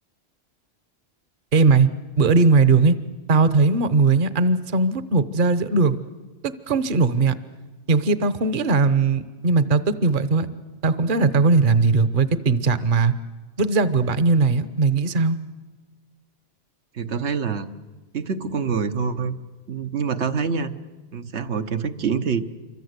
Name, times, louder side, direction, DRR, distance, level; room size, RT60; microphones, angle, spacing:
voice 1, 1.5-1.9 2.2-2.9 3.3-6.0 6.4-7.3 7.9-10.5 10.8-13.1 13.6-15.4, right 4 dB, 50° right, 13 dB, 1.1 m, -19 dB
voice 2, 16.9-17.7 18.1-19.4 19.7-20.7 21.1-22.4, right 6 dB, 80° right, 8 dB, 1.4 m, -26 dB
27.5 x 24.5 x 8.1 m, 1.3 s
omnidirectional pair, 1.1 m